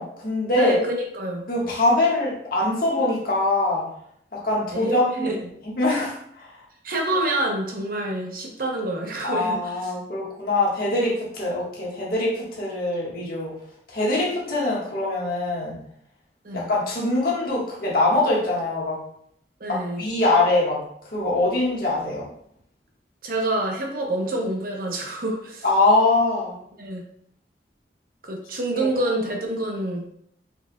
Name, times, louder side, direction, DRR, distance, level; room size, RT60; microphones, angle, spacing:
voice 1, 0.0-0.8 1.5-3.8 4.3-5.4 5.8-6.5 9.2-13.5 13.9-15.8 16.5-19.0 19.7-20.8 21.1-22.3 25.6-26.6 28.7-28.9, left 2 dB, 55° left, -4 dB, 1.6 m, -23 dB
voice 2, 0.5-1.4 4.7-5.3 6.8-9.9 16.4-16.7 19.6-20.0 23.2-25.6 26.8-27.0 28.2-30.0, right 1 dB, 55° right, 1 dB, 0.9 m, -27 dB
4.9 x 4.6 x 2.3 m, 0.69 s
head